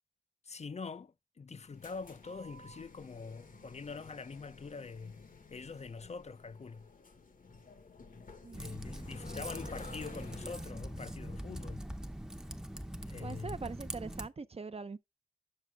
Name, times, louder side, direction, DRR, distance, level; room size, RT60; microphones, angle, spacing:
voice 1, 0.4-5.3 5.5-6.9 8.5-11.9 13.1-13.6, left 4 dB, 50° left, 0.5 m, -44 dB
sound 1, 1.5-10.9, left 3 dB, 70° left, 1.2 m, -53 dB
voice 2, 8.4-8.8 13.2-15.0, right 4 dB, 45° right, 0.6 m, -42 dB
Typing, 8.5-14.3, equal, 5° right, 0.7 m, -43 dB
7.4 x 6.5 x 3.4 m
wide cardioid pair, 65°, 14 cm